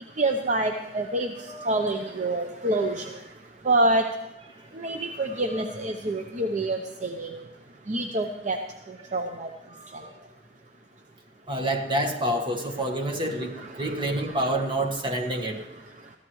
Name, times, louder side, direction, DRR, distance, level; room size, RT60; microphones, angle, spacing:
voice 1, 0.2-3.2 3.6-4.1 4.7-7.4 7.9-8.6 8.9-9.5 13.6-13.9 14.3-14.4, right 2 dB, 45° right, 4 dB, 0.8 m, -27 dB
voice 2, 1.4-1.9 5.3-5.7 9.0-9.1 9.7-10.2 11.5-15.6, right 1 dB, 30° right, 4 dB, 1.5 m, -29 dB
22.0 x 14.5 x 3.1 m, 0.91 s
head